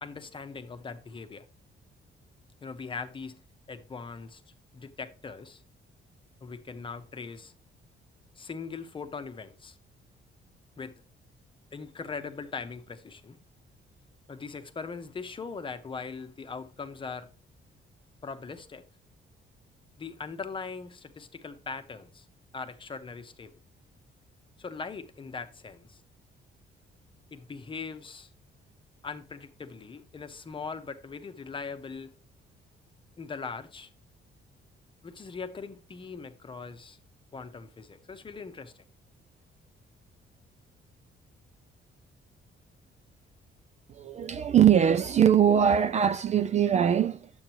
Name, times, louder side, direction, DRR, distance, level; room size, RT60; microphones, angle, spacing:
voice 1, 0.0-1.4 2.6-3.4 3.7-4.4 4.7-5.6 6.4-7.5 8.3-9.8 10.8-10.9 11.7-13.4 14.3-17.3 18.2-18.8 20.0-22.3 22.5-23.5 24.6-26.0 27.3-28.3 29.0-32.1 33.2-33.9 35.0-37.0 37.3-38.7, left 5 dB, 25° left, 0.9 m, -40 dB
voice 2, 43.9-47.3, right 9 dB, 35° right, 0.4 m, -22 dB
10.5 x 7.9 x 3.0 m
cardioid pair, 170°, 20 cm